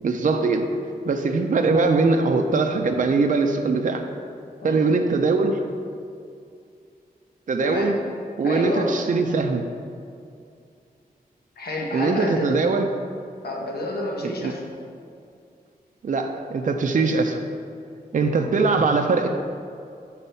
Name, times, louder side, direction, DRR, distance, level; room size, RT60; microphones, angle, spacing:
voice 1, 0.0-0.7 1.0-4.0 4.6-5.6 7.5-8.0 8.4-9.7 11.9-12.9 14.2-14.5 16.0-17.4 18.1-19.3, right 3 dB, 55° right, 5 dB, 0.5 m, -21 dB
voice 2, 7.6-8.0 8.4-9.0 11.6-12.6 13.4-14.7 18.2-18.5, left 1 dB, 90° left, -1 dB, 1.2 m, -29 dB
7.0 x 4.1 x 5.6 m, 2.4 s
wide cardioid pair, 80°, 16 cm